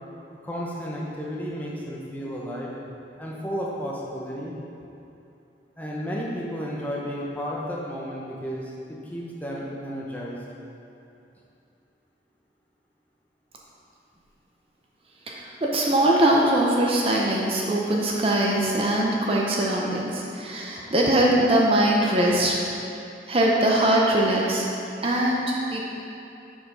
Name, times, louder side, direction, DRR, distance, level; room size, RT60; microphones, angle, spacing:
voice 1, 0.4-2.7 3.2-4.6 5.8-10.4, equal, 10° left, -4 dB, 0.7 m, -32 dB
voice 2, 15.3-22.6 23.3-24.7 25.0-25.9, right 1 dB, 30° right, -2 dB, 0.6 m, -22 dB
6.3 x 4.8 x 5.0 m, 2.7 s
head